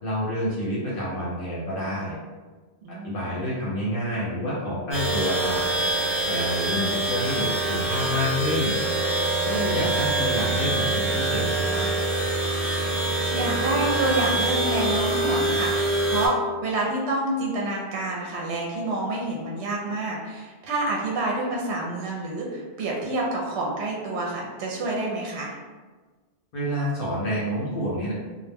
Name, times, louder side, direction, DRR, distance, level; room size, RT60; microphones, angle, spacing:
voice 1, 0.0-2.2 3.0-5.6 6.3-8.8 9.4-11.8 26.5-28.1, left 1 dB, 60° left, -6 dB, 0.8 m, -28 dB
voice 2, 2.8-3.1 9.6-9.7 13.3-25.6, right 2 dB, 80° right, -2 dB, 0.8 m, -28 dB
sound 1, 4.9-16.3, right 2 dB, 20° left, 0.9 m, -25 dB
2.1 x 2.1 x 3.3 m, 1.3 s
omnidirectional pair, 1.1 m